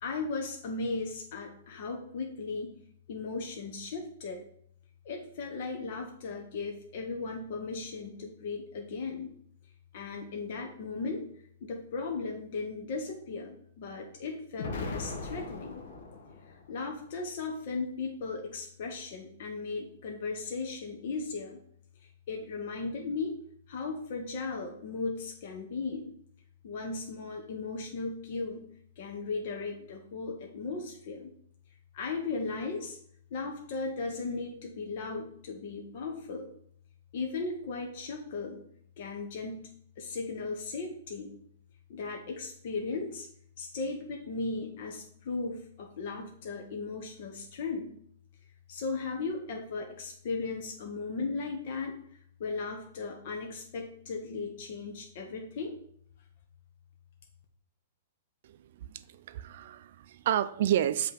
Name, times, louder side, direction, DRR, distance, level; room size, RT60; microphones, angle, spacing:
voice 1, 0.0-2.7 3.1-4.4 5.0-9.3 9.9-11.2 11.6-15.8 16.7-21.6 22.3-23.3 23.7-26.0 26.6-28.6 29.0-31.3 31.9-33.0 33.3-36.5 37.1-38.6 39.0-39.7 40.0-41.3 41.9-43.3 43.6-47.9 48.7-51.9 52.4-55.7, left 4 dB, 60° left, 1 dB, 1.0 m, -36 dB
Explosion, 14.6-16.7, left 3 dB, 75° left, 1.1 m, -39 dB
voice 2, 58.4-61.1, right 11 dB, 65° right, 14 dB, 0.4 m, -30 dB
7.6 x 3.0 x 5.1 m, 0.66 s
hypercardioid pair, 135°, 0 cm